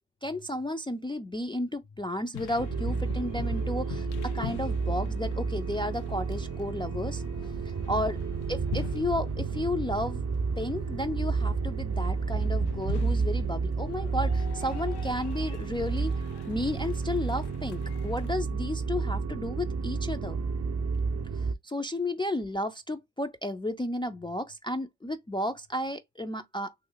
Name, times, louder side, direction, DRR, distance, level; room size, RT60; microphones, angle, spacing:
voice 1, 0.2-7.2 7.9-8.2 8.5-10.2 10.6-16.1 16.5-20.4 21.6-26.7, left 1 dB, 15° left, 0.3 m, -33 dB
sound 1, 2.3-18.3, left 13 dB, 75° left, 0.5 m, -45 dB
sound 2, 2.6-21.6, right 4 dB, 40° right, 0.5 m, -31 dB
3.1 x 2.7 x 3.8 m
cardioid pair, 105°, 40 cm